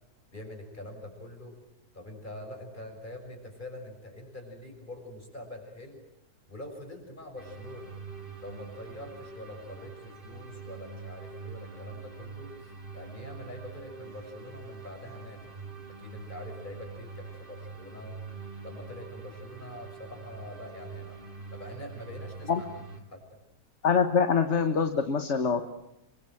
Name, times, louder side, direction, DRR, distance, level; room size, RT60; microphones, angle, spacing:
voice 1, 0.3-1.6 1.9-6.0 6.5-7.9 8.4-15.5 16.0-18.2 18.6-21.2 21.5-23.2, left 1 dB, 30° left, 3 dB, 6.6 m, -44 dB
sound 1, 7.4-23.0, right 4 dB, 30° right, 2.7 m, -44 dB
voice 2, 23.8-25.6, left 6 dB, 45° left, 8 dB, 1.6 m, -24 dB
27.0 x 24.0 x 7.8 m, 0.86 s
omnidirectional pair, 1.7 m